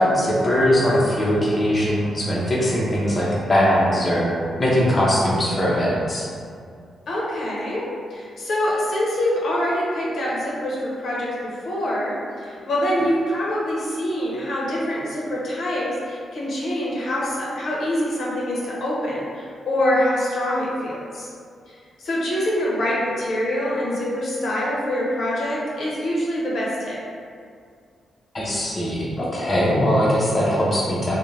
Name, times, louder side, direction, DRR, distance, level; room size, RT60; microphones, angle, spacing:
voice 1, 0.0-4.3 4.6-6.3 28.3-31.2, equal, 25° left, -6 dB, 0.6 m, -20 dB
voice 2, 7.1-7.9 8.1-21.3 21.7-27.0, left 1 dB, 65° left, -6 dB, 0.6 m, -25 dB
2.4 x 2.1 x 3.1 m, 2.2 s
cardioid pair, 80°, 0 cm